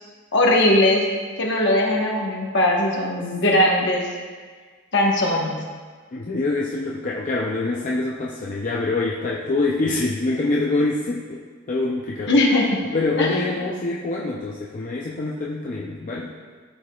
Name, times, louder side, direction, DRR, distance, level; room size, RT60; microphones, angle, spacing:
voice 1, 0.3-1.1 1.4-4.1 4.9-5.5 12.3-12.8 13.2-13.5, left 1 dB, 55° left, -1 dB, 1.1 m, -19 dB
voice 2, 6.1-12.3 12.9-16.3, left 2 dB, 35° left, -3 dB, 0.4 m, -25 dB
12.0 x 4.8 x 2.3 m, 1.5 s
head